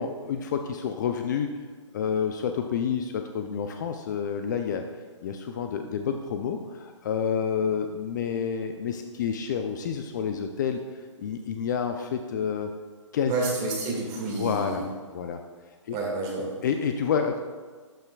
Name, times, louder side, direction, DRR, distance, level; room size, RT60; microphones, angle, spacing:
voice 1, 0.0-1.5 1.9-4.8 5.2-10.8 11.2-12.7 13.1-13.5 14.3-15.4 15.9-16.0 16.6-17.4, left 7 dB, 35° left, 6 dB, 0.4 m, -29 dB
voice 2, 13.3-14.8 15.9-16.5, right 3 dB, 25° right, -2 dB, 1.9 m, -29 dB
12.5 x 5.7 x 2.3 m, 1.5 s
hypercardioid pair, 145°, 16 cm